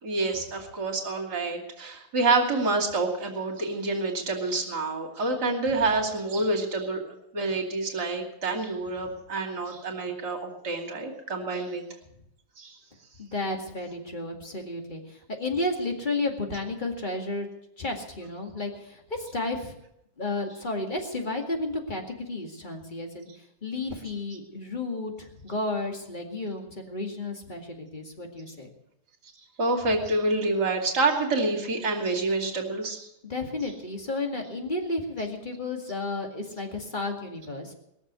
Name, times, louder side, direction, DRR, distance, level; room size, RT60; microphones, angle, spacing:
voice 1, 0.0-7.0 7.3-11.8 12.6-12.7 29.6-33.1, right 3 dB, 55° right, 0 dB, 3.3 m, -27 dB
voice 2, 13.2-17.5 17.8-19.7 20.2-23.3 23.6-28.7 33.2-37.8, left 2 dB, 25° left, 2 dB, 2.2 m, -32 dB
21.5 x 7.2 x 8.2 m, 0.80 s
omnidirectional pair, 2.1 m